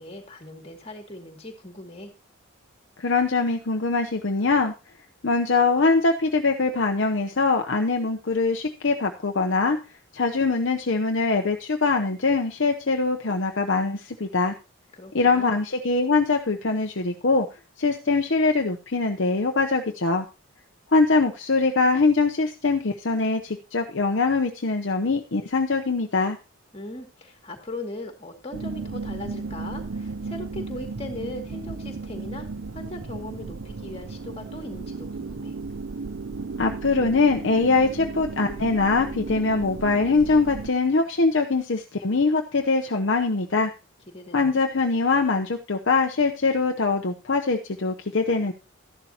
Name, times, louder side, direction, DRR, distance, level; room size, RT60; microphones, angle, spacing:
voice 1, 0.0-2.1 14.9-15.6 26.7-35.5 44.1-44.7, left 1 dB, 25° left, 3 dB, 2.3 m, -39 dB
voice 2, 3.0-4.7 5.2-9.8 10.1-14.5 15.1-17.5 17.8-20.2 20.9-26.4 36.6-43.7 44.3-48.5, left 3 dB, 60° left, 3 dB, 0.8 m, -23 dB
sound 1, 28.5-40.7, right 3 dB, 65° right, 0.6 m, -35 dB
13.0 x 11.0 x 2.9 m, 0.29 s
head